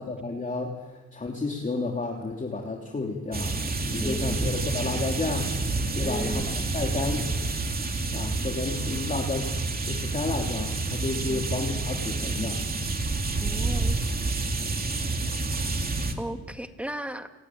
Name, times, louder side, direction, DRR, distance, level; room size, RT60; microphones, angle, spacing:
voice 1, 0.0-5.5 5.9-7.3 8.1-9.5 9.9-12.6 16.3-16.4, left 3 dB, 25° left, 0 dB, 3.1 m, -31 dB
sound 1, 3.3-16.1, right 3 dB, 30° right, 2.8 m, -29 dB
voice 2, 4.0-4.5 6.0-6.7 11.3-11.5 13.4-14.0 16.2-17.3, right 1 dB, 5° right, 7 dB, 1.9 m, -35 dB
29.0 x 13.5 x 9.6 m, 1.2 s
cardioid pair, 90°, 30 cm